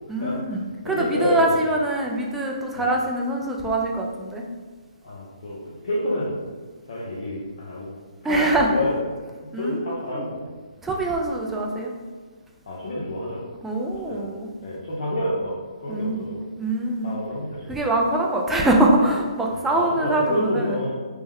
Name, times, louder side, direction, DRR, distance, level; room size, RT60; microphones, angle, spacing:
voice 1, 0.1-4.4 8.2-8.7 9.5-9.9 10.2-10.3 10.8-11.9 13.6-14.5 15.9-16.2 16.5-17.1 17.7-20.8, right 1 dB, 5° right, -1 dB, 0.3 m, -23 dB
voice 2, 0.8-1.6 2.7-2.9 5.0-6.4 6.9-7.9 8.2-9.0 9.5-10.5 12.7-13.4 14.1-14.3 14.6-15.5 15.8-16.4 17.0-17.8 19.5-20.9, left 1 dB, 65° left, -6 dB, 0.7 m, -28 dB
3.2 x 2.1 x 3.4 m, 1.4 s
hypercardioid pair, 145°, 3 cm